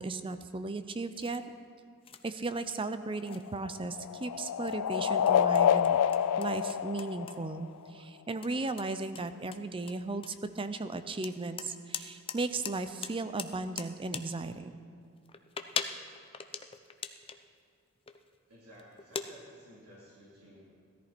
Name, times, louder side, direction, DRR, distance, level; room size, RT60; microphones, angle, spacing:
voice 1, 0.0-1.4 2.2-6.0 6.4-14.8, right 3 dB, 25° right, 11 dB, 0.5 m, -36 dB
sound 1, 1.0-1.4 2.0-2.9 3.2-3.9 4.2-4.3 4.7-7.4 7.7-7.9 8.4-8.5 8.8-10.6 11.2-12.4 12.6-12.7 13.0-14.2 15.2-17.4 18.1-18.4 18.8-19.3, left 6 dB, 25° left, 0.6 m, -40 dB
sound 2, 3.1-7.9, left 9 dB, 90° left, 0.3 m, -28 dB
voice 2, 18.5-20.6, equal, 85° right, -8 dB, 3.4 m, -55 dB
17.0 x 13.5 x 4.4 m, 2.3 s
head